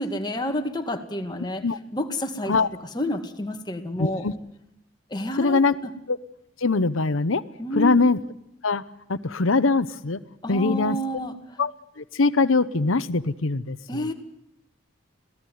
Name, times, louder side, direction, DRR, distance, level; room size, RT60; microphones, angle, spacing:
voice 1, 0.0-1.6 1.9-2.5 2.9-4.2 5.1-5.6 7.6-8.0 10.4-11.3 13.9-14.1, equal, 20° left, 5 dB, 2.1 m, -29 dB
voice 2, 4.0-4.3 5.4-5.7 6.1-6.2 6.6-7.4 7.7-8.2 8.6-8.8 9.1-10.2 10.5-11.0 11.6-11.7 12.0-14.0, left 3 dB, 85° left, 13 dB, 0.9 m, -22 dB
26.5 x 17.0 x 9.4 m, 0.81 s
head